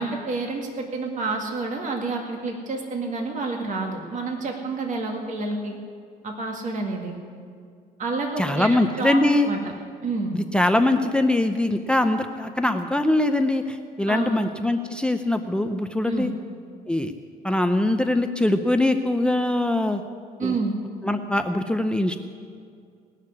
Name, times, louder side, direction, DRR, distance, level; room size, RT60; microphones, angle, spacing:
voice 1, 0.0-5.7 6.2-7.2 8.0-9.2 9.4-9.7 10.0-10.4 14.1-14.4 16.1-16.3 20.4-20.8, right 3 dB, 45° right, 1 dB, 2.1 m, -29 dB
voice 2, 8.4-9.5 10.3-16.3 16.9-17.1 17.4-20.0 20.4-20.6 21.0-22.2, left 1 dB, 5° left, 8 dB, 0.6 m, -22 dB
19.5 x 6.6 x 9.6 m, 2.3 s
cardioid pair, 110°, 17 cm